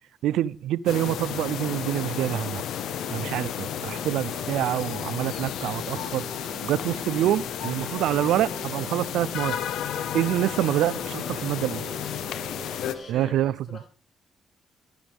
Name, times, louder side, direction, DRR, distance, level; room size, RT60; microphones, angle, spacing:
voice 1, 0.2-2.6 3.1-6.2 6.6-9.6 10.1-11.8 13.1-13.5, right 13 dB, 85° right, 0.5 m, -26 dB
sound 1, 0.9-13.0, left 10 dB, 80° left, 1.3 m, -32 dB
sound 2, 1.5-13.3, right 3 dB, 35° right, 2.8 m, -44 dB
voice 2, 12.9-13.9, left 4 dB, 55° left, 5.1 m, -43 dB
15.5 x 13.5 x 3.6 m
supercardioid pair, 70°, 0 cm